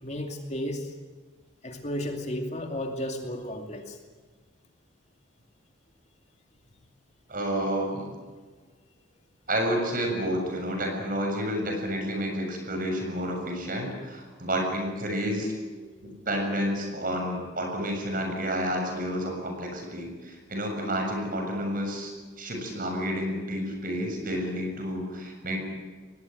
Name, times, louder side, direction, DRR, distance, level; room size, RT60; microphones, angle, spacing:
voice 1, 0.0-0.9 1.6-4.0 15.8-16.3, left 1 dB, 35° left, 4 dB, 2.5 m, -34 dB
voice 2, 7.3-8.1 9.5-15.5 16.0-22.1 22.4-25.6, equal, 45° right, 3 dB, 7.2 m, -30 dB
22.5 x 19.0 x 9.3 m, 1.4 s
head